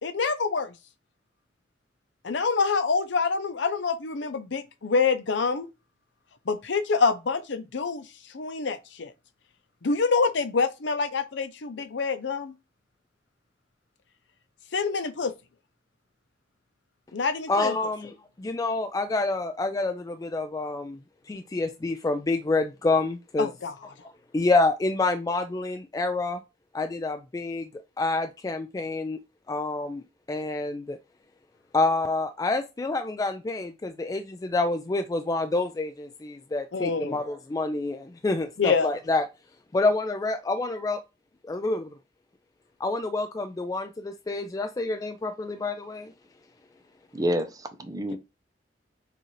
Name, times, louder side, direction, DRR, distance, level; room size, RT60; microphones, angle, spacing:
voice 1, 0.0-0.7 2.2-5.7 6.5-8.0 8.3-9.1 9.8-12.5 14.7-15.3 17.1-17.9 23.4-23.9 36.7-37.2 38.6-39.0, left 4 dB, 80° left, 0.6 m, -26 dB
voice 2, 17.5-18.1 18.4-21.0 21.3-23.5 24.3-26.4 26.7-27.7 28.0-29.2 29.5-30.0 30.3-31.0 31.7-39.2 39.7-41.0 41.5-41.9 42.8-46.1, left 2 dB, 20° left, 0.3 m, -27 dB
voice 3, 47.1-48.2, equal, 20° right, 0.6 m, -28 dB
6.6 x 2.5 x 3.1 m
head